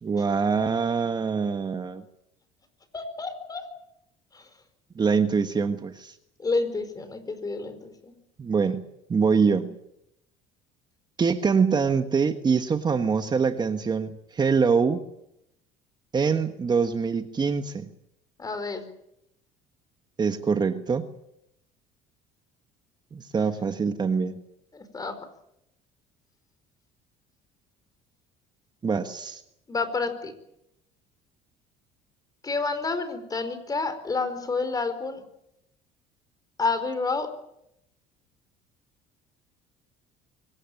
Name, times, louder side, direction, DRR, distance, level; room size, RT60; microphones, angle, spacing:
voice 1, 0.0-2.0 4.9-6.2 8.4-8.8 9.1-9.7 11.2-15.0 16.1-17.9 20.2-21.1 23.1-24.4 28.8-29.4, right 5 dB, 25° right, 8 dB, 1.4 m, -24 dB
voice 2, 2.9-3.6 4.3-4.5 6.4-8.1 18.4-18.8 24.7-25.2 29.7-30.3 32.4-35.2 36.6-37.3, left 3 dB, 25° left, 11 dB, 4.5 m, -29 dB
24.5 x 17.0 x 9.2 m, 0.80 s
cardioid pair, 105°, 16 cm